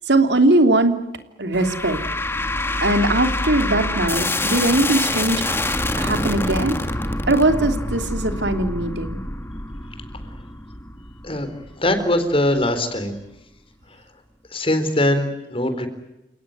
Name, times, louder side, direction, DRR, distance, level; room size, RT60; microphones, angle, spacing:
voice 1, 0.1-1.0 1.4-2.0 2.8-5.6 6.0-9.2, right 2 dB, 75° right, 7 dB, 3.1 m, -20 dB
sound 1, 1.5-12.8, left 2 dB, 15° left, 1.9 m, -26 dB
voice 2, 11.8-13.2 14.5-15.9, left 1 dB, 35° left, 9 dB, 4.2 m, -21 dB
29.5 x 18.0 x 9.5 m, 0.94 s
head